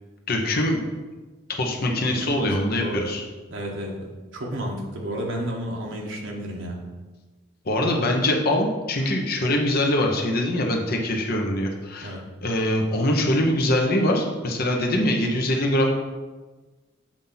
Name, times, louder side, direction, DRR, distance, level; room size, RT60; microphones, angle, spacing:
voice 1, 0.3-0.8 1.6-3.2 7.7-15.9, left 1 dB, 50° left, 1 dB, 0.9 m, -23 dB
voice 2, 2.2-3.1 3.5-6.8 12.0-12.2, equal, 70° right, -1 dB, 1.2 m, -32 dB
7.3 x 2.7 x 5.5 m, 1.3 s
head